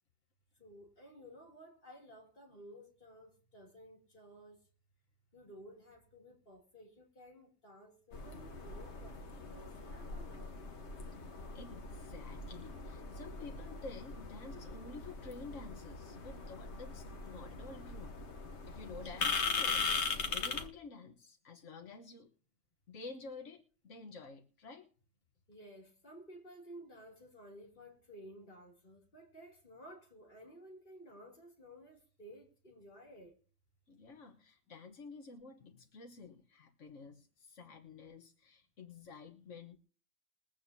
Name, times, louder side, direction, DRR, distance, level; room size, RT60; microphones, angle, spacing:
voice 1, 0.6-4.6 5.3-10.6 25.5-33.4, equal, 45° left, 3.0 m, -55 dB
sound 1, 8.1-20.7, left 4 dB, 65° left, 1.5 m, -40 dB
voice 2, 11.5-18.2 18.7-22.3 22.9-24.9 33.9-39.8, left 4 dB, 85° left, 1.5 m, -50 dB
21.5 x 8.5 x 2.7 m
omnidirectional pair, 1.2 m